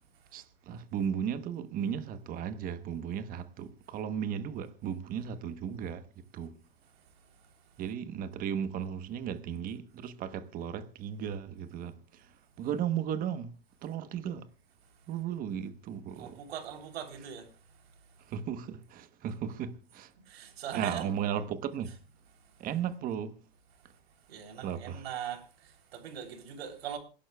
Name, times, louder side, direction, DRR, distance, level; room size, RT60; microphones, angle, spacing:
voice 1, 0.3-6.0 6.3-6.6 7.8-12.3 12.6-13.5 13.8-14.5 15.1-16.4 18.3-20.1 20.7-21.9 22.6-23.4 24.6-25.0, right 8 dB, 30° right, 1.0 m, -35 dB
voice 2, 16.1-17.5 20.3-21.1 24.3-27.0, right 8 dB, 80° right, 3.4 m, -40 dB
27.5 x 11.5 x 2.3 m
supercardioid pair, 140°, 31 cm